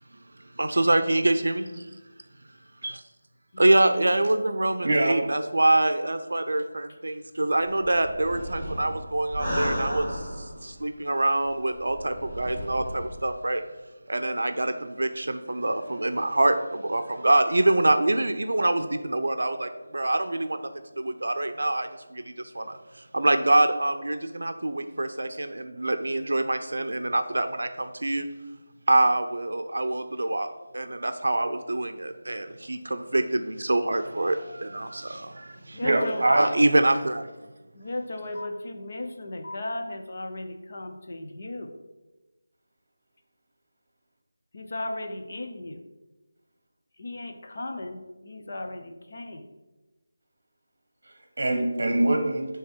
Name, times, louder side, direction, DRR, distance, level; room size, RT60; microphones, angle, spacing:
voice 1, 0.6-1.8 2.8-2.9 3.6-13.6 14.1-20.7 21.0-28.3 28.9-30.5 30.7-35.8 36.3-37.3, right 2 dB, 70° right, 9 dB, 0.5 m, -25 dB
voice 2, 4.8-5.3 35.8-36.5 51.4-52.5, right 1 dB, 50° right, 4 dB, 1.2 m, -23 dB
sound 1, 7.6-10.8 11.4-13.2, equal, ahead, 1.0 m, -34 dB
voice 3, 35.5-36.2 37.7-41.8 44.5-45.9 47.0-49.5, left 2 dB, 35° left, 4 dB, 0.5 m, -36 dB
9.5 x 3.4 x 4.4 m, 1.1 s
figure-of-eight pair, 180°, 0 cm